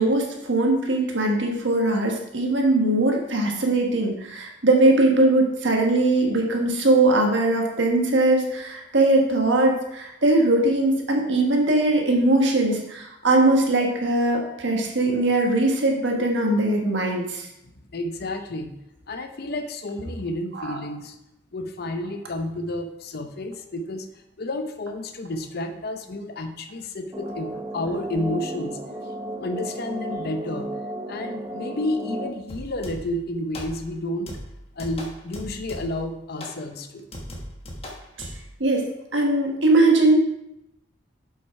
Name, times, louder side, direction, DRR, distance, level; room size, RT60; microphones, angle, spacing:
voice 1, 0.0-17.5 20.6-20.8 38.2-38.3 38.6-38.9 39.1-40.2, right 2 dB, 70° right, 1 dB, 1.4 m, -20 dB
voice 2, 17.9-18.8 19.1-21.2 21.5-24.1 24.4-28.8 29.4-30.7 31.1-34.4 34.8-37.1, left 1 dB, 55° left, 7 dB, 0.7 m, -31 dB
sound 1, 27.1-32.3, right 1 dB, 20° right, 0.8 m, -34 dB
sound 2, 32.5-33.2 33.5-34.0 34.3-36.1 36.4-36.6 37.1-38.5, left 1 dB, 30° left, 1.2 m, -38 dB
7.5 x 5.5 x 4.7 m, 0.84 s
head